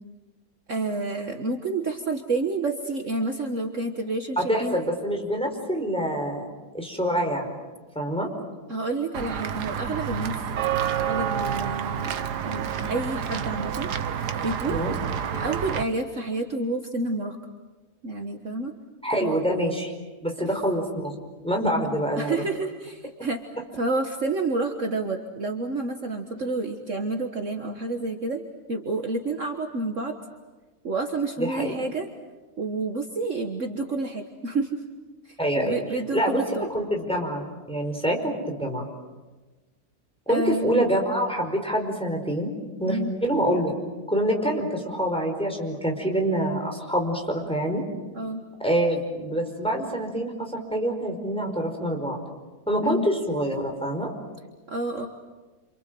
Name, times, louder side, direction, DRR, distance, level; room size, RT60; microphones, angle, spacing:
voice 1, 0.7-4.8 8.7-10.3 11.0-13.9 14.4-15.0 15.3-17.4 18.0-18.7 19.2-19.4 22.2-23.4 23.7-28.4 28.7-30.1 30.8-32.1 32.6-34.8 35.3-36.7 40.3-40.9 42.9-43.1 48.1-48.4 52.8-53.1 54.7-55.1, right 2 dB, 50° right, 4 dB, 1.8 m, -29 dB
voice 2, 4.4-6.4 6.7-7.6 7.9-8.3 14.7-14.9 19.0-19.9 20.2-21.1 21.4-22.5 31.4-31.7 35.4-35.7 36.1-38.9 40.3-42.5 42.8-43.7 44.1-47.8 48.6-52.2 52.7-54.1, right 1 dB, 5° left, 1 dB, 5.0 m, -26 dB
Walk footsteps / Bell, 9.1-15.8, right 8 dB, 80° right, 1.7 m, -29 dB
28.0 x 27.5 x 7.8 m, 1.2 s
omnidirectional pair, 1.7 m